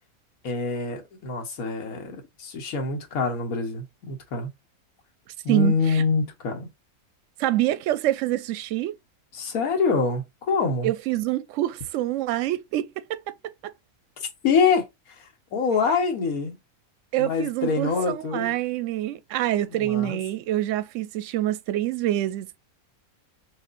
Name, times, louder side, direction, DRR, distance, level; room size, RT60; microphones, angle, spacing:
voice 1, 0.4-4.5 5.4-6.7 9.3-10.9 14.2-16.5 17.2-18.5 19.7-20.2, left 4 dB, 75° left, 1.5 m, -25 dB
voice 2, 5.5-6.0 7.4-8.9 10.8-13.3 13.6-13.7 17.1-22.6, right 14 dB, 70° right, 0.8 m, -26 dB
6.2 x 2.5 x 2.5 m
omnidirectional pair, 1.5 m